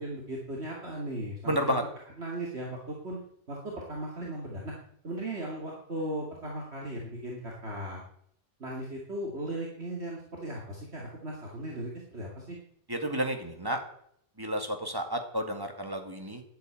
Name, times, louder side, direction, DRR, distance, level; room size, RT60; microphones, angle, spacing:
voice 1, 0.0-1.9 2.2-3.2 3.5-4.7 5.0-8.0 8.6-12.6, right 1 dB, 60° right, -2 dB, 2.7 m, -37 dB
voice 2, 1.5-1.8 12.9-13.8 14.4-16.4, equal, 20° right, 5 dB, 2.0 m, -31 dB
11.0 x 8.5 x 9.1 m, 0.68 s
omnidirectional pair, 1.2 m